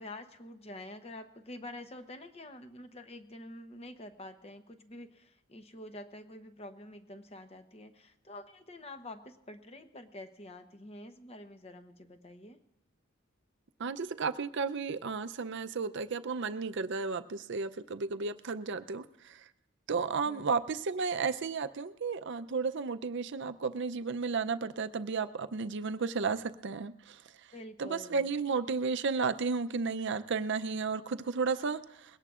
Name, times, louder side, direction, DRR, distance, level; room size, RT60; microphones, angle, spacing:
voice 1, 0.0-12.6 20.2-20.6 27.5-28.3, left 1 dB, 30° left, 8 dB, 0.8 m, -47 dB
voice 2, 13.8-19.5 19.9-27.2 27.8-32.2, right 4 dB, 60° right, 11 dB, 0.5 m, -33 dB
21.5 x 17.5 x 2.5 m, 0.89 s
head